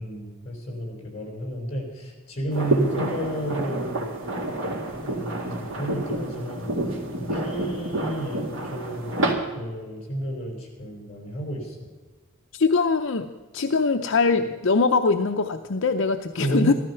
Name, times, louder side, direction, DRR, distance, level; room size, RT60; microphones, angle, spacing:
voice 1, 0.0-4.2 5.0-6.7 7.2-9.1 9.5-11.8 16.4-16.7, right 1 dB, 30° left, 0 dB, 4.9 m, -31 dB
sound 1, 2.5-9.3, right 1 dB, 70° right, 2.4 m, -28 dB
voice 2, 12.5-13.3 13.5-16.7, left 4 dB, 65° left, 6 dB, 0.6 m, -22 dB
15.0 x 13.5 x 5.7 m, 1.3 s
head